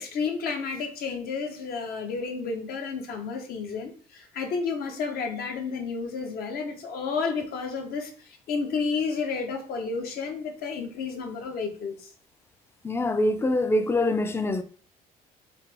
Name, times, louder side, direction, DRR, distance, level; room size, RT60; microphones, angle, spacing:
voice 1, 0.0-12.1, left 5 dB, 65° left, 0.8 m, -31 dB
voice 2, 12.8-14.6, left 1 dB, 15° left, 0.4 m, -24 dB
4.2 x 2.0 x 3.3 m
cardioid pair, 110°, 17 cm